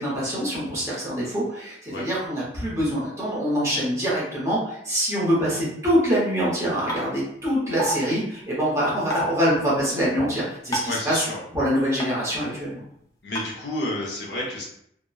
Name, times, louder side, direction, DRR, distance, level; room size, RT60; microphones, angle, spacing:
voice 1, 0.0-11.2 11.5-12.8, equal, 15° right, -7 dB, 0.8 m, -24 dB
sound 1, 6.9-7.0 7.8-8.0 9.1-9.3 10.7-11.0 12.0-12.1 13.4-13.5, equal, 20° left, 0.4 m, -26 dB
voice 2, 10.8-11.4 13.2-14.6, left 1 dB, 65° left, -4 dB, 0.7 m, -30 dB
2.8 x 2.1 x 2.3 m, 0.71 s
head